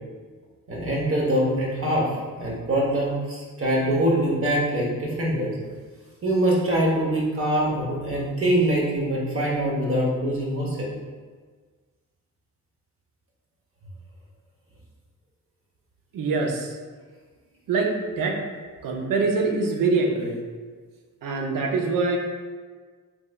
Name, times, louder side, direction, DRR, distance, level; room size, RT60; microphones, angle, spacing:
voice 1, 0.7-5.6 6.2-10.9, right 1 dB, 40° right, -3 dB, 0.8 m, -24 dB
voice 2, 16.1-16.8 17.7-18.4 18.8-20.4 21.2-22.2, right 3 dB, 75° right, 2 dB, 0.5 m, -24 dB
3.2 x 3.0 x 2.2 m, 1.5 s
wide cardioid pair, 125°, 33 cm